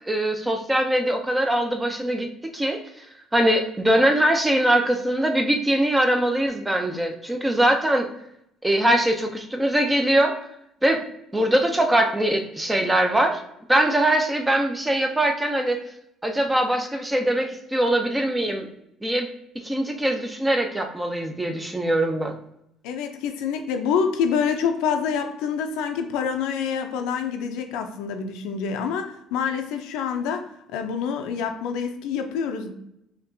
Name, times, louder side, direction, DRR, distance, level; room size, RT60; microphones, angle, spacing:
voice 1, 0.1-3.1 3.3-8.1 8.6-10.4 10.8-11.0 11.3-13.4 13.7-15.8 16.2-18.7 19.0-19.3 19.6-22.4, right 1 dB, 10° right, 5 dB, 0.5 m, -22 dB
voice 2, 22.8-32.7, left 6 dB, 85° left, 6 dB, 0.5 m, -27 dB
4.2 x 2.9 x 2.6 m, 0.78 s
cardioid pair, 115°, 0 cm